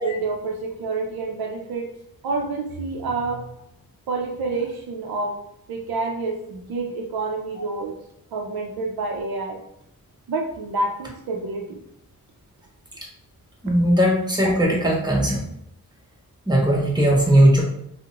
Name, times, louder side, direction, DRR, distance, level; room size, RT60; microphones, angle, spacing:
voice 1, 0.0-1.9 2.2-3.4 4.1-5.3 5.7-7.9 8.3-9.6 10.3-11.8, right 3 dB, 75° right, 0 dB, 0.6 m, -28 dB
voice 2, 13.6-15.4 16.5-17.6, right 1 dB, 10° right, -2 dB, 0.9 m, -18 dB
2.8 x 2.1 x 3.6 m, 0.75 s
wide cardioid pair, 100°, 36 cm